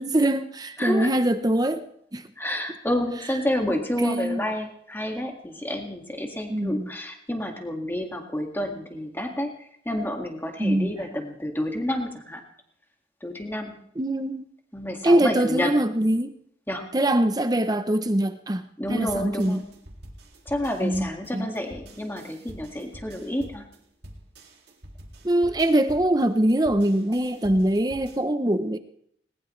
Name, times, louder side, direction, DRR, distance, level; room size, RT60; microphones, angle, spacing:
voice 1, 0.0-1.9 2.1-2.3 4.0-4.4 6.5-6.9 10.6-10.9 14.0-14.4 15.0-16.4 16.9-18.6 18.9-19.7 20.8-21.5 25.2-28.8, right 1 dB, 20° right, 9 dB, 0.7 m, -23 dB
voice 2, 0.8-1.1 2.4-12.4 13.2-13.8 14.7-15.7 16.7-16.9 18.8-19.7 20.5-23.7, left 1 dB, 10° left, 3 dB, 1.9 m, -29 dB
sound 1, 19.1-28.2, right 1 dB, 60° right, 2.3 m, -46 dB
19.5 x 19.5 x 3.2 m, 0.70 s
head